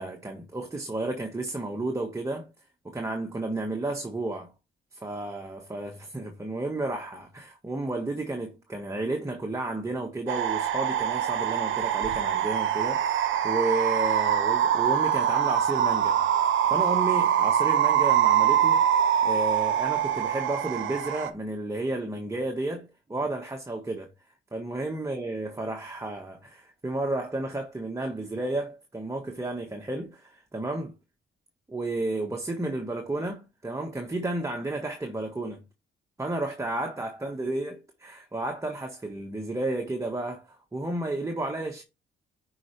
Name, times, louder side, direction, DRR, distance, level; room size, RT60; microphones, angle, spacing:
voice 1, 0.0-2.5 2.8-4.5 4.9-16.2 16.7-18.8 19.2-24.1 24.5-30.9 31.7-35.6 36.2-41.8, right 2 dB, 15° right, 1.5 m, -32 dB
sound 1, 10.3-21.3, right 9 dB, 75° right, 1.0 m, -24 dB
9.8 x 4.9 x 3.3 m
cardioid pair, 90°, 20 cm